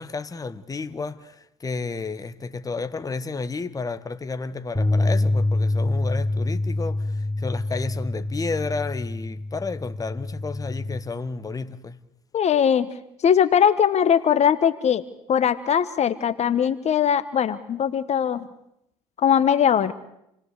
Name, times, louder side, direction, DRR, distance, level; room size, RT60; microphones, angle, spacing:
voice 1, 0.0-12.0, left 4 dB, 25° left, 1.4 m, -32 dB
sound 1, 4.8-11.0, left 2 dB, ahead, 5.1 m, -26 dB
voice 2, 12.3-12.9 13.2-18.4 19.2-19.9, left 8 dB, 45° left, 1.3 m, -20 dB
28.5 x 18.5 x 8.3 m
hypercardioid pair, 70°, 15 cm